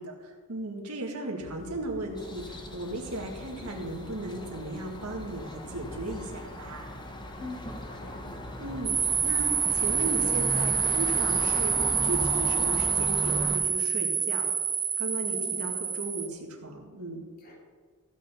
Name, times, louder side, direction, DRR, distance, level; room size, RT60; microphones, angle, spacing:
voice 1, 0.0-6.9 8.6-14.5 15.0-17.3, right 1 dB, 75° right, 0 dB, 2.0 m, -36 dB
Dog, 1.4-12.9, left 1 dB, 60° left, 1.1 m, -46 dB
sound 1, 2.1-13.6, equal, 20° left, 1.2 m, -38 dB
voice 2, 7.4-8.3 15.3-15.7 17.4-17.6, left 3 dB, 40° left, -1 dB, 2.9 m, -44 dB
sound 2, 8.9-16.3, right 6 dB, 20° right, 0.7 m, -27 dB
15.0 x 6.9 x 5.9 m, 1.5 s
head